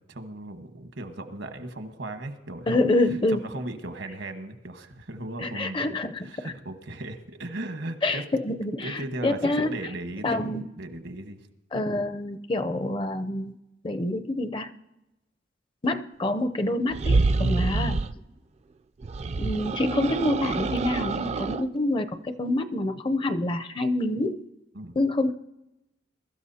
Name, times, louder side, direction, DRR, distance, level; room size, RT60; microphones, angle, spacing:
voice 1, 0.1-2.9 3.3-5.8 6.2-8.3 8.8-10.4 10.8-11.4 17.4-17.6 24.7-25.0, right 1 dB, 80° right, 7 dB, 1.3 m, -37 dB
voice 2, 2.7-3.4 5.4-6.5 8.0-9.8 10.2-10.7 11.7-13.5 13.8-14.7 15.8-18.0 19.4-24.4 24.9-25.3, left 2 dB, 30° left, 9 dB, 0.5 m, -27 dB
sound 1, 16.9-18.2 19.0-21.6, right 3 dB, 35° right, 0.4 m, -26 dB
22.0 x 13.0 x 2.8 m, 0.95 s
head